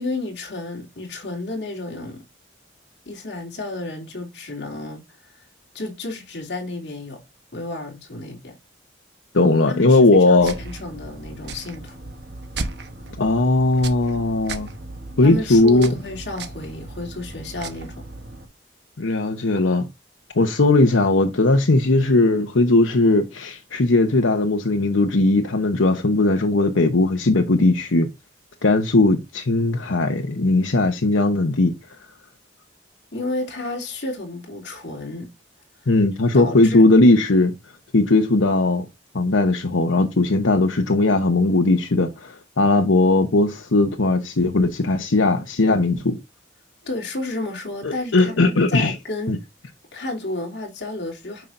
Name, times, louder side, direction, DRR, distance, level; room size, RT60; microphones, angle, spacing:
voice 1, 0.0-2.2 3.0-5.0 5.7-7.2 7.5-8.6 9.7-12.1 15.2-18.0 33.1-35.3 36.3-36.8 46.8-49.4 49.9-51.4, left 2 dB, 60° left, 2.8 m, -31 dB
voice 2, 9.3-10.6 13.2-14.7 15.2-15.9 19.0-19.9 20.3-28.1 28.6-32.0 35.9-37.5 37.9-38.8 39.1-46.2 47.8-49.0 49.3-49.4, left 2 dB, 90° left, 0.9 m, -18 dB
sound 1, 10.4-18.4, right 2 dB, 60° right, 1.1 m, -36 dB
9.2 x 5.7 x 2.6 m
head